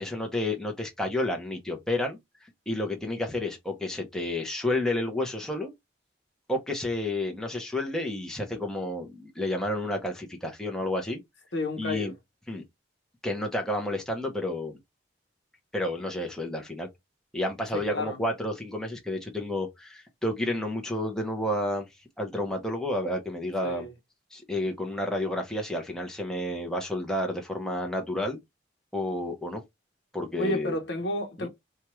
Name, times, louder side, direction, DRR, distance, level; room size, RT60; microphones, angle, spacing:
voice 1, 0.0-5.7 6.5-11.2 11.8-12.1 12.5-12.6 13.2-14.8 15.7-16.9 17.3-21.9 22.2-23.9 24.3-28.4 28.9-29.6 30.1-30.7 31.4-31.5, left 1 dB, 5° left, 0.7 m, -30 dB
voice 2, 11.5-12.1 17.7-18.3 23.6-23.9 30.4-31.5, left 1 dB, 70° left, 0.9 m, -31 dB
4.5 x 2.3 x 3.0 m
head